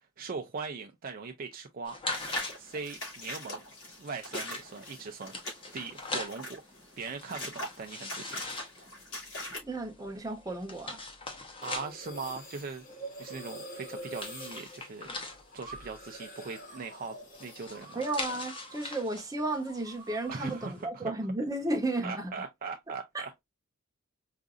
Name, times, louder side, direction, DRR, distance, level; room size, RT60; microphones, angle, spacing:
voice 1, 0.2-2.0 2.6-3.6 4.0-5.3 5.7-6.6 7.0-8.4 11.6-12.8 13.2-15.1 15.5-18.0 20.3-21.1 22.0-23.4, right 4 dB, 45° right, 0.4 m, -40 dB
sound 1, 1.9-20.8, left 2 dB, 25° left, 0.9 m, -43 dB
sound 2, 2.1-9.6, left 1 dB, 65° left, 2.7 m, -41 dB
voice 2, 9.6-11.0 17.9-22.3, right 2 dB, 15° right, 0.8 m, -33 dB
sound 3, 11.6-19.0 19.3-20.8, right 1 dB, 40° left, 1.7 m, -46 dB
4.8 x 2.6 x 2.4 m
head